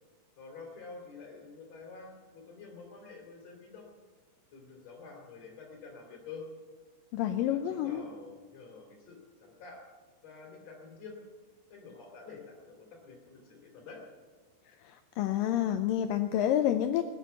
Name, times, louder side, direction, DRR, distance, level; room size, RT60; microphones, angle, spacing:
voice 1, 0.4-3.9 4.5-6.5 7.4-9.8 10.2-11.2 11.7-14.0, left 4 dB, 45° left, 1 dB, 4.3 m, -48 dB
voice 2, 7.1-8.0 14.8-17.0, left 11 dB, 85° left, 8 dB, 2.0 m, -29 dB
19.5 x 9.8 x 6.9 m, 1.4 s
omnidirectional pair, 4.7 m